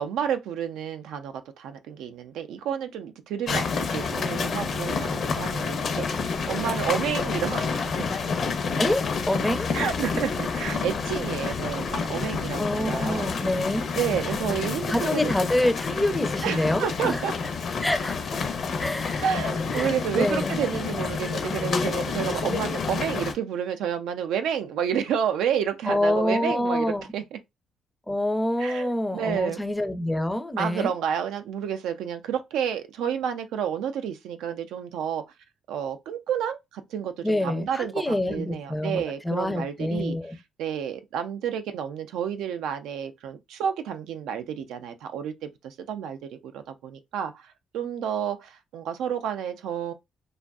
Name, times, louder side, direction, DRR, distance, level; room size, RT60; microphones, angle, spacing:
voice 1, 0.0-8.4 9.7-13.3 13.9-15.3 16.4-17.3 19.2-27.4 28.6-29.6 30.6-35.2 35.7-40.2 40.6-49.9, right 8 dB, 85° right, 0.4 m, -30 dB
sound 1, 3.5-23.3, left 5 dB, 60° left, 0.6 m, -29 dB
sound 2, 4.6-14.7, left 3 dB, 85° left, 0.9 m, -47 dB
voice 2, 8.8-9.7 12.6-13.9 14.9-17.2 17.8-18.4 18.8-19.2 19.7-20.6 25.9-27.0 28.1-30.9 37.2-40.4, left 1 dB, 10° left, 0.4 m, -26 dB
2.6 x 2.3 x 2.3 m
cardioid pair, 90°, 0 cm